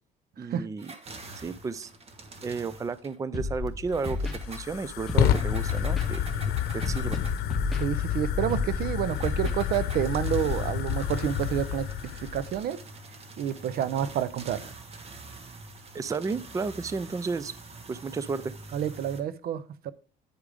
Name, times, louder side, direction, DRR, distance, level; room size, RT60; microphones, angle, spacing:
voice 1, 0.4-0.9 1.4-1.9 2.4-6.3 6.7-7.2 15.9-17.5 17.9-18.5, right 4 dB, 20° right, 17 dB, 0.4 m, -32 dB
sound 1, 0.8-3.2 3.9-7.5 9.0-19.2, right 3 dB, 35° right, 1.4 m, -46 dB
Scratching (performance technique), 3.3-3.7 4.0-4.4 5.1-5.4 5.8-6.1 6.8-7.2 7.5-7.8 8.5-8.8 9.2-9.5, left 2 dB, ahead, 2.0 m, -31 dB
Fire, 3.6-12.6, left 9 dB, 70° left, 0.8 m, -29 dB
voice 2, 7.7-11.9 12.2-12.8 13.4-14.7 18.7-19.9, right 10 dB, 65° right, 16 dB, 0.6 m, -29 dB
9.5 x 5.0 x 4.9 m, 0.37 s
cardioid pair, 110°, 17 cm